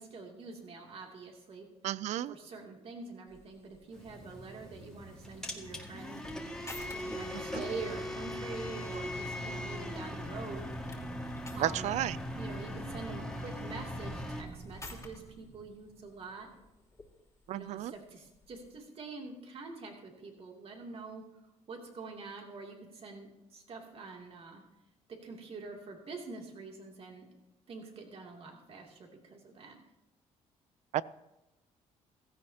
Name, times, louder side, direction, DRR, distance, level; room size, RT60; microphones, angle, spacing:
voice 1, 0.0-1.7 2.3-6.6 6.9-10.7 11.5-11.9 12.3-16.5 17.5-21.2 21.7-24.6 25.1-27.3 27.7-29.8, right 4 dB, 50° right, 1 dB, 2.8 m, -45 dB
voice 2, 1.8-2.4 7.5-7.6 11.6-12.2 17.5-17.9 30.9-31.0, right 12 dB, 70° right, 19 dB, 0.4 m, -32 dB
sound 1, 3.3-18.8, left 3 dB, 25° left, 2.6 m, -55 dB
sound 2, 3.9-14.4, left 1 dB, 5° left, 2.0 m, -40 dB
sound 3, 10.5-16.7, right 4 dB, 25° right, 0.7 m, -50 dB
16.5 x 14.0 x 2.9 m, 0.95 s
cardioid pair, 100°, 13 cm